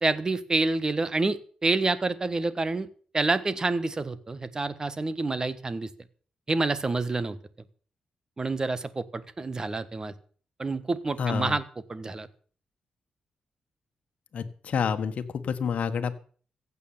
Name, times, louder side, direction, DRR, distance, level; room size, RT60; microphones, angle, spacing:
voice 1, 0.0-2.9 3.1-5.9 6.5-7.4 8.4-10.1 10.6-11.6 11.9-12.3, right 3 dB, 25° right, 15 dB, 1.3 m, -28 dB
voice 2, 11.2-11.6 14.3-16.1, left 6 dB, 65° left, 7 dB, 1.5 m, -28 dB
15.5 x 8.5 x 7.2 m, 0.44 s
cardioid pair, 105°, 2 cm